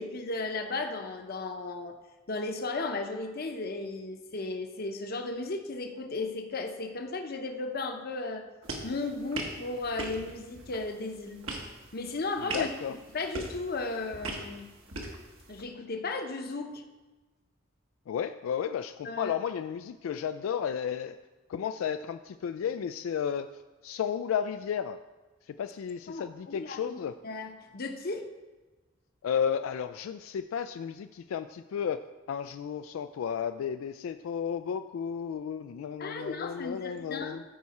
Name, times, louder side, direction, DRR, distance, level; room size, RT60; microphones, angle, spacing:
voice 1, 0.0-1.9 2.3-8.5 8.8-11.5 11.9-12.7 13.1-14.7 15.5-16.8 19.0-19.3 26.1-27.0 27.2-28.3 36.0-37.4, left 3 dB, 50° left, 5 dB, 0.8 m, -35 dB
sound 1, 8.6-15.6, right 2 dB, 75° right, 1.4 m, -41 dB
voice 2, 12.5-12.9 18.1-21.2 21.5-23.5 23.8-25.0 25.6-27.1 29.2-37.4, left 8 dB, 80° left, 10 dB, 0.3 m, -33 dB
14.0 x 4.8 x 4.2 m, 1.2 s
head